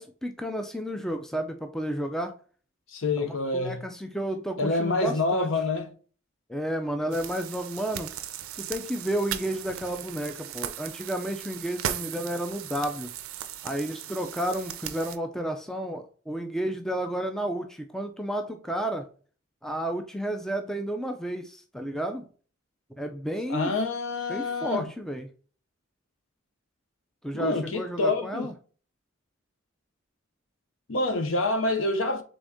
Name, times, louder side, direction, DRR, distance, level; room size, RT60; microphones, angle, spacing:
voice 1, 0.0-2.4 3.2-5.5 6.5-8.1 8.5-13.1 13.6-19.1 19.6-22.2 23.0-23.7 24.3-25.3 27.2-28.5, right 1 dB, ahead, 0.3 m, -32 dB
voice 2, 2.9-3.8 4.6-5.9 23.5-24.9 27.3-28.5 30.9-32.2, left 2 dB, 65° left, 0.7 m, -27 dB
sound 1, 7.1-15.2, right 10 dB, 80° right, 0.5 m, -37 dB
3.9 x 3.5 x 3.5 m
head